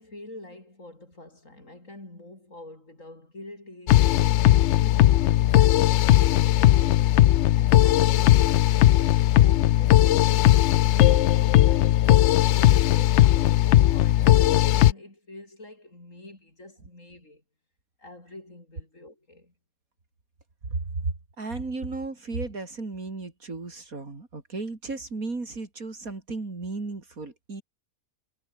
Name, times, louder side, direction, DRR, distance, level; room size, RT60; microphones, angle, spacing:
voice 1, 0.0-8.7 9.3-10.5 10.8-17.4 18.0-19.5, left 2 dB, 50° left, 6.6 m, -46 dB
sound 1, 3.9-14.9, left 13 dB, 80° left, 0.6 m, -18 dB
voice 2, 20.7-27.6, right 3 dB, 55° right, 3.9 m, -34 dB
omnidirectional pair, 1.8 m